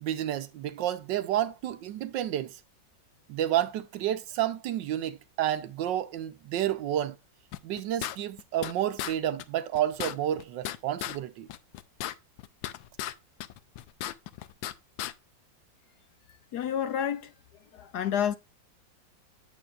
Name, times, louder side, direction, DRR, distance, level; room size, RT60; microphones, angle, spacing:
voice 1, 0.0-2.5 3.3-7.2 7.6-11.5, right 11 dB, 75° right, 1.4 m, -30 dB
sound 1, 7.5-8.7 9.0-9.1 9.4-9.5 9.7-11.2 11.5-13.1 13.4-14.7 15.0-15.1, left 13 dB, 90° left, 1.4 m, -36 dB
voice 2, 16.5-17.3 17.7-18.4, left 9 dB, 65° left, 1.1 m, -29 dB
8.9 x 7.5 x 2.4 m
omnidirectional pair, 2.0 m